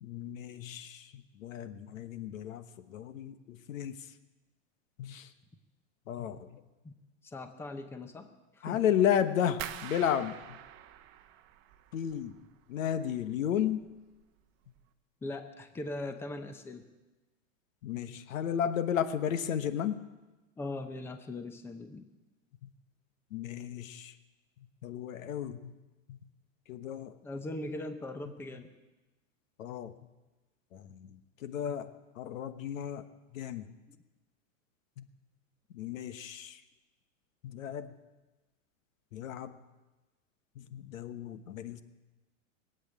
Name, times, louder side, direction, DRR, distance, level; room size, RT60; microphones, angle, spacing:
voice 1, 0.0-4.0 5.0-5.3 6.1-6.6 8.6-10.4 11.9-12.4 12.7-13.8 17.8-20.0 22.6-22.7 23.3-24.1 24.8-25.7 26.1-26.2 26.7-27.1 29.6-29.9 30.7-33.0 33.3-33.7 35.0-35.1 35.7-36.6 37.4-37.9 39.1-39.5 40.6-41.8, left 9 dB, 90° left, 11 dB, 1.1 m, -33 dB
voice 2, 7.2-8.3 8.5-8.8 15.2-16.8 20.6-22.0 27.2-28.7 33.9-34.0, left 2 dB, 5° left, 8 dB, 0.7 m, -40 dB
sound 1, 9.6-12.5 12.8-13.5 13.8-14.2 14.6-14.8, right 12 dB, 30° right, 0.9 m, -45 dB
19.5 x 8.3 x 8.9 m, 1.1 s
supercardioid pair, 155°, 38 cm